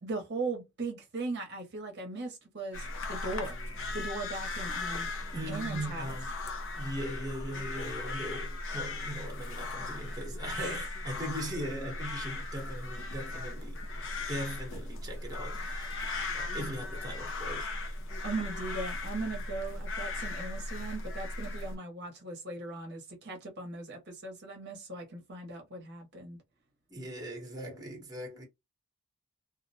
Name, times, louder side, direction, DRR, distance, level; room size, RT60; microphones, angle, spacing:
voice 1, 0.0-3.6 3.9-5.1 5.5-6.2 10.6-10.8 18.2-26.4, right 3 dB, 50° right, 0.8 m, -38 dB
sound 1, 2.7-21.7, left 2 dB, 60° left, 0.5 m, -37 dB
voice 2, 5.3-6.3 6.7-13.8 14.3-17.7 26.9-28.4, right 1 dB, 15° right, 0.9 m, -40 dB
2.4 x 2.1 x 2.6 m
head